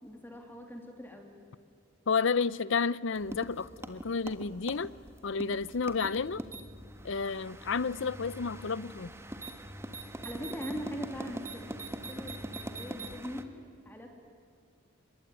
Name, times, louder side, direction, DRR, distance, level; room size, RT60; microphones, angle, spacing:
voice 1, 0.0-1.4 10.2-11.7 12.1-13.5 13.8-14.1, equal, 10° left, 2.9 m, -41 dB
voice 2, 2.1-4.9 5.2-6.4 7.0-9.1, left 5 dB, 65° left, 0.6 m, -31 dB
sound 1, 3.1-13.4, right 1 dB, 15° right, 1.4 m, -43 dB
25.0 x 22.0 x 10.0 m
head